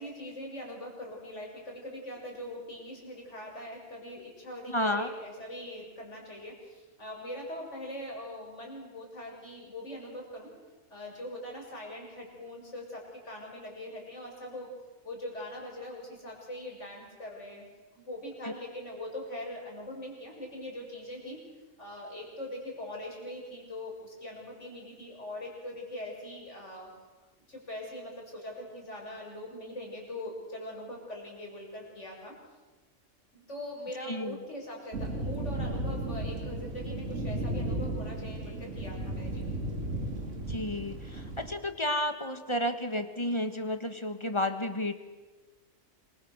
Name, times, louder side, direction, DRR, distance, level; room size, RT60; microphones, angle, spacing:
voice 1, 0.0-10.5 10.9-14.7 15.0-17.7 17.9-21.4 21.8-26.9 27.5-32.3 33.3-39.4, left 1 dB, 65° left, -1 dB, 7.0 m, -42 dB
voice 2, 4.7-5.1 18.4-18.5 34.1-34.4 40.5-44.9, left 1 dB, 20° left, 8 dB, 1.6 m, -31 dB
sound 1, 34.9-41.5, right 1 dB, 70° right, 2.6 m, -35 dB
26.5 x 25.0 x 6.4 m, 1.2 s
omnidirectional pair, 1.3 m